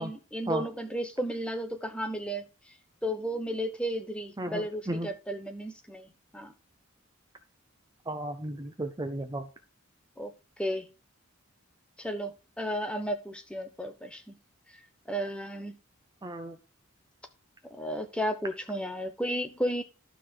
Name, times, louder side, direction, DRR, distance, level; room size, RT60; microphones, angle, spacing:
voice 1, 0.0-2.4 3.0-6.1 6.3-6.5 10.2-10.3 10.6-10.9 12.0-14.3 15.1-15.8 17.7-19.8, equal, 5° left, 1.0 m, -33 dB
voice 2, 4.4-5.1 8.1-9.4 16.2-16.6, right 1 dB, 20° right, 0.6 m, -34 dB
12.0 x 4.0 x 6.2 m
head